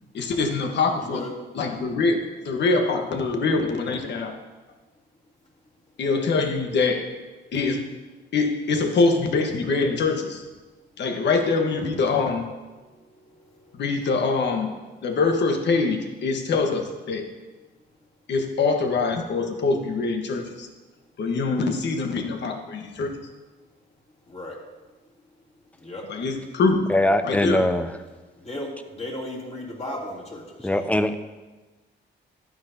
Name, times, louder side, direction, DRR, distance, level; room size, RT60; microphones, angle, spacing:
voice 1, 0.1-1.2 1.5-4.3 6.0-7.1 7.5-7.9 8.3-10.4 11.0-12.4 13.7-14.7 15.0-16.8 17.1-17.3 18.3-20.7 21.2-23.1 26.1-26.9 27.2-27.6, left 4 dB, 60° left, 4 dB, 1.4 m, -24 dB
voice 2, 1.0-1.3 24.3-24.5 25.8-26.0 28.4-30.9, left 1 dB, 35° left, -4 dB, 3.1 m, -35 dB
voice 3, 26.9-27.9 30.6-31.2, left 1 dB, 5° left, 9 dB, 0.6 m, -21 dB
12.0 x 9.4 x 2.8 m, 1.2 s
cardioid pair, 90°, 20 cm